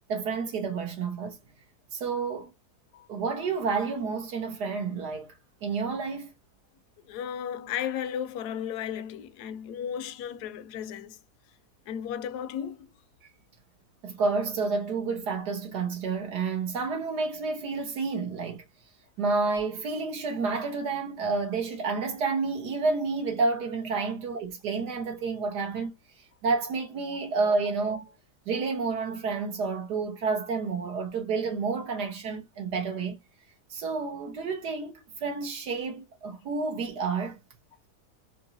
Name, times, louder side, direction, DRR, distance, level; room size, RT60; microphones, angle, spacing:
voice 1, 0.1-1.4 1.9-2.5 3.1-5.3 5.6-6.3 14.0-18.6 19.2-25.9 26.4-28.0 28.5-33.2 33.7-37.4, right 4 dB, 85° right, 1.9 m, -30 dB
voice 2, 7.1-11.2 11.9-12.9 24.0-24.1 27.4-27.5, left 9 dB, 80° left, 1.1 m, -35 dB
4.6 x 2.9 x 2.6 m
omnidirectional pair, 1.7 m